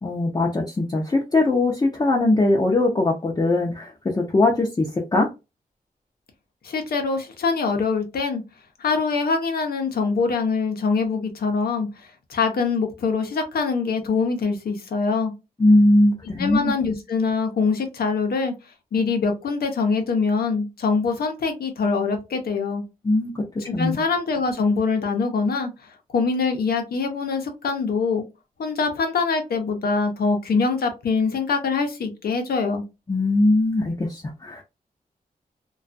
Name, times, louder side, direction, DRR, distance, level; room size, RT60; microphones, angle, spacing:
voice 1, 0.0-4.9 5.1-5.3 15.6-16.7 23.0-23.4 23.7-24.0 33.1-34.6, left 2 dB, 25° left, 0.6 m, -20 dB
voice 2, 6.6-8.4 8.8-11.9 12.3-15.3 16.4-18.5 18.9-22.8 23.6-25.7 26.1-28.2 28.6-32.8, left 4 dB, 85° left, 0.7 m, -24 dB
2.3 x 2.3 x 2.5 m
cardioid pair, 70°, 16 cm